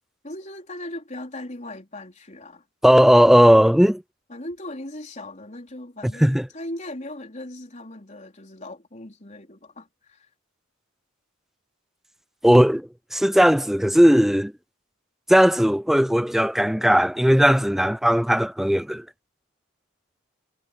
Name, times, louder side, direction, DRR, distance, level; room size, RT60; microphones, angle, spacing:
voice 1, 0.2-2.6 4.3-10.3, left 1 dB, 35° left, 4.2 m, -38 dB
voice 2, 2.8-4.0 6.2-6.5 12.4-14.5 15.3-19.0, equal, ahead, 0.4 m, -17 dB
head